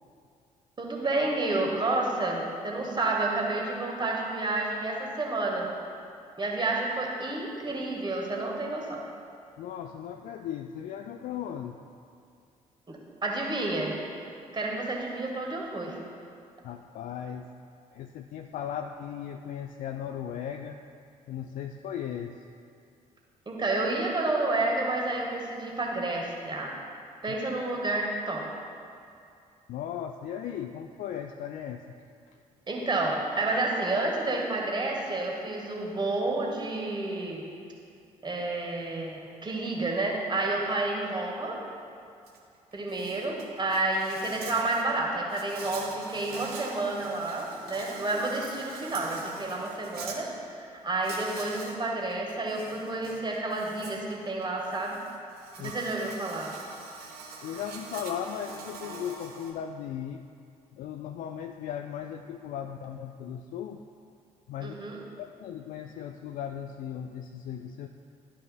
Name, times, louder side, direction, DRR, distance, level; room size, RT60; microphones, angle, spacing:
voice 1, 0.8-5.7 6.4-9.0 12.9-14.0 14.5-16.0 23.4-26.8 27.2-28.5 32.7-37.4 38.2-41.6 42.7-50.3 50.6-54.9 55.6-56.5 64.6-65.0, right 2 dB, 25° right, -1 dB, 1.5 m, -30 dB
voice 2, 9.6-11.8 16.6-17.5 17.9-20.8 21.3-22.4 27.3-27.4 29.7-31.8 55.6-55.8 57.4-60.2 60.7-63.8 64.5-64.8 65.2-67.9, left 9 dB, 45° left, 5 dB, 0.4 m, -37 dB
Insect, 42.3-42.4 42.7-50.2 51.0-51.8 52.1-59.5, right 4 dB, 55° right, 0.9 m, -44 dB
12.0 x 5.5 x 2.2 m, 2.5 s
figure-of-eight pair, 45°, 19 cm